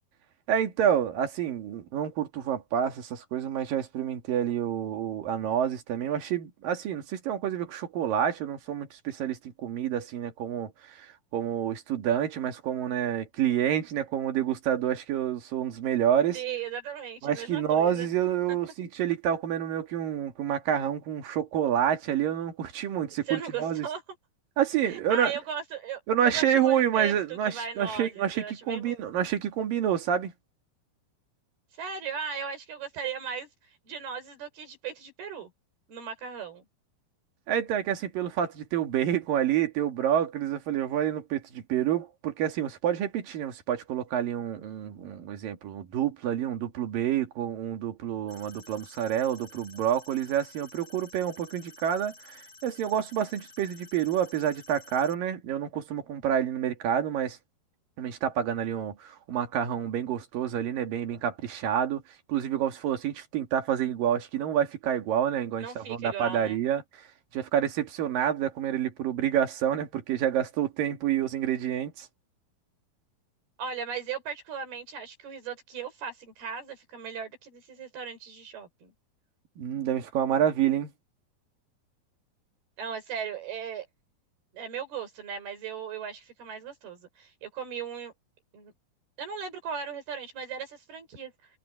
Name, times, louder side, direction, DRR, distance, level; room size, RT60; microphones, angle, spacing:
voice 1, 0.5-16.4 17.2-23.9 24.6-25.3 26.1-30.3 37.5-57.4 58.0-62.0 62.3-66.8 67.3-72.1 79.6-80.9, right 9 dB, 65° right, 3.7 m, -28 dB
voice 2, 16.3-18.1 23.3-24.0 24.8-27.2 27.5-28.9 31.8-33.5 33.9-35.5 35.9-36.6 65.6-66.6 73.6-78.9 82.8-83.9 84.5-88.1 88.5-88.7 89.2-91.3, right 7 dB, 80° right, 7.3 m, -37 dB
sound 1, 48.3-55.1, left 3 dB, 40° left, 6.8 m, -52 dB
omnidirectional pair, 4.4 m